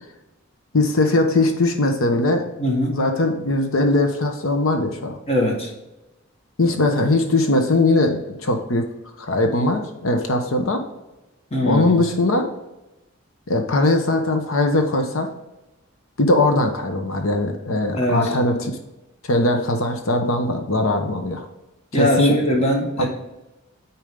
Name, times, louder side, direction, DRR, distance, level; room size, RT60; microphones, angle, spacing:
voice 1, 0.7-2.4 2.9-5.2 6.6-8.9 9.2-10.8 11.6-12.5 13.5-15.3 16.2-18.7 19.3-21.5 21.9-22.3 23.0-23.1, left 2 dB, 80° left, 5 dB, 0.9 m, -20 dB
voice 2, 2.6-2.9 5.3-5.7 11.5-11.8 17.9-18.3 21.9-23.1, left 1 dB, 30° left, 0 dB, 1.5 m, -21 dB
8.7 x 4.5 x 3.7 m, 0.98 s
head